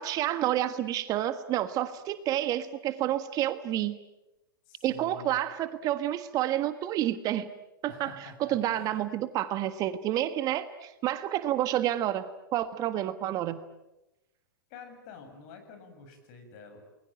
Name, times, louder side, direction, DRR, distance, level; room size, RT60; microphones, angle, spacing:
voice 1, 0.0-3.9 4.8-7.5 7.8-12.2 12.5-13.6, right 12 dB, 35° right, 12 dB, 1.5 m, -29 dB
voice 2, 4.7-5.4 7.9-9.1 14.7-16.8, left 5 dB, 45° left, 6 dB, 7.4 m, -49 dB
29.0 x 21.5 x 8.9 m, 0.96 s
hypercardioid pair, 105°, 11 cm